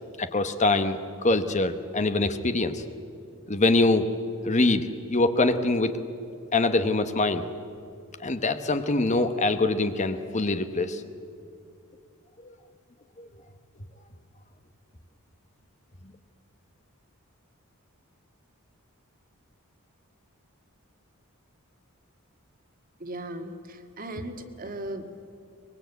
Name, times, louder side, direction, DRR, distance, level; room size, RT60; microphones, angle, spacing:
voice 1, 0.2-2.9 3.5-4.1 4.4-5.9 6.5-7.5 8.2-11.0 13.2-13.3, left 2 dB, 35° left, 9 dB, 1.0 m, -24 dB
voice 2, 23.0-25.2, right 1 dB, 40° right, 6 dB, 1.8 m, -37 dB
24.0 x 21.5 x 8.2 m, 2.6 s
head